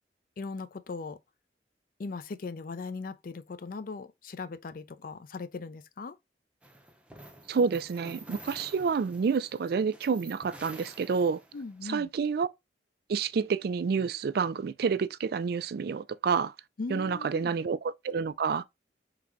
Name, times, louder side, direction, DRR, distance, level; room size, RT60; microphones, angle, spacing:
voice 1, 0.4-1.2 2.0-6.2 11.5-12.1 16.8-17.5, left 4 dB, 55° left, 0.4 m, -39 dB
sound 1, 6.6-11.8, right 2 dB, 5° right, 0.6 m, -49 dB
voice 2, 7.5-11.4 11.8-12.5 13.1-16.5 16.9-18.6, right 5 dB, 60° right, 0.3 m, -29 dB
3.9 x 2.2 x 4.5 m
head